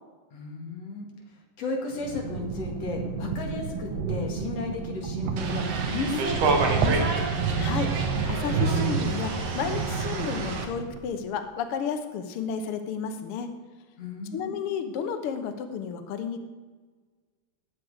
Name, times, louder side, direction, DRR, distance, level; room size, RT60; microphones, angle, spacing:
voice 1, 0.3-1.1 1.6-7.3 14.0-14.7, left 3 dB, 50° left, 1 dB, 3.2 m, -34 dB
sound 1, 1.9-11.1, right 5 dB, 75° right, 2.8 m, -30 dB
sound 2, 5.4-10.7, right 3 dB, 55° right, 2.2 m, -30 dB
voice 2, 7.6-7.9 8.3-13.5 14.3-16.4, left 7 dB, 85° left, 8 dB, 1.2 m, -32 dB
19.5 x 8.0 x 4.9 m, 1.4 s
omnidirectional pair, 3.9 m